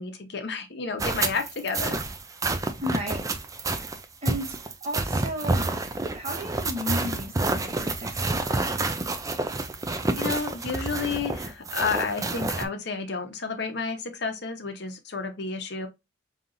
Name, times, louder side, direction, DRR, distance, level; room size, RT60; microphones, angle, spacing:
voice 1, 0.0-2.0 10.1-15.9, left 4 dB, 60° left, 0.8 m, -31 dB
sound 1, 1.0-12.7, right 2 dB, 15° right, 0.4 m, -29 dB
voice 2, 2.8-3.2 4.2-4.6 4.8-5.7 6.1-9.0, left 1 dB, 35° right, 1.2 m, -34 dB
5.3 x 2.8 x 2.5 m
head